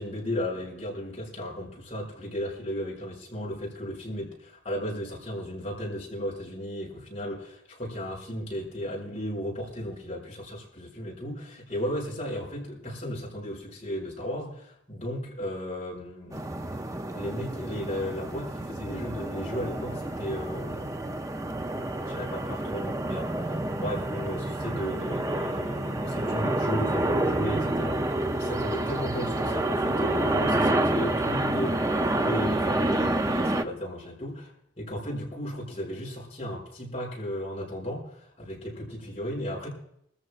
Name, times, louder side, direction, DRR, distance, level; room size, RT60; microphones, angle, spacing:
voice 1, 0.0-16.4 17.1-21.0 22.1-28.1 28.4-34.4 34.8-39.7, equal, 30° left, -5 dB, 6.4 m, -35 dB
sound 1, 16.3-33.6, right 1 dB, 15° right, 0.6 m, -28 dB
25.5 x 14.5 x 2.5 m, 0.74 s
head